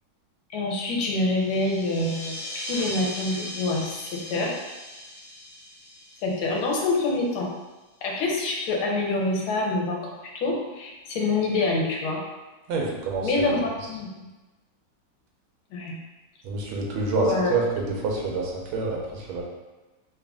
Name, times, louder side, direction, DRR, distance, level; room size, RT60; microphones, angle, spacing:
voice 1, 0.5-4.5 6.2-7.5 8.0-12.2 13.2-14.3 15.7-16.0 17.2-17.5, left 2 dB, 80° left, -1 dB, 1.5 m, -26 dB
sound 1, 1.3-7.4, left 1 dB, 65° left, 1.7 m, -38 dB
voice 2, 12.7-13.5 16.4-19.4, right 4 dB, 80° right, -1 dB, 1.5 m, -27 dB
3.6 x 2.4 x 3.4 m, 1.1 s
omnidirectional pair, 2.3 m